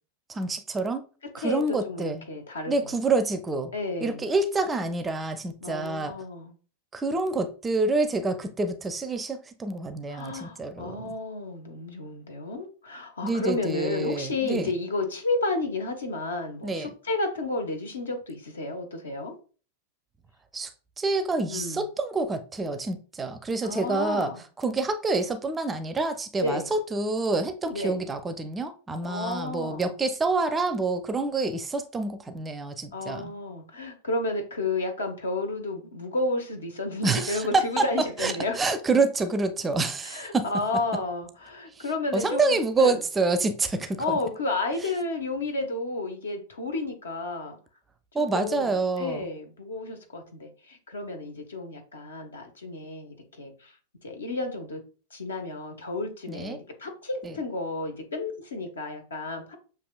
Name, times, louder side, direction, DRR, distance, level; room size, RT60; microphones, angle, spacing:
voice 1, 0.3-1.0 1.3-2.3 2.7-3.7 4.0-6.1 6.9-11.1 13.2-14.7 16.6-16.9 20.5-20.7 21.0-33.3 37.0-37.9 38.2-40.5 41.8-41.9 42.1-44.2 48.1-49.3 56.3-56.6 57.2-57.3, right 3 dB, 15° right, 0.5 m, -27 dB
voice 2, 1.4-2.9 3.7-4.3 5.6-6.5 10.1-19.3 21.5-21.8 23.6-24.4 26.4-26.7 27.7-28.0 29.0-29.9 32.9-38.6 40.0-43.0 44.0-47.6 48.3-53.7 54.0-54.8 55.1-59.6, left 2 dB, 70° left, 1.0 m, -32 dB
6.9 x 2.8 x 2.2 m
figure-of-eight pair, 90°, 0 cm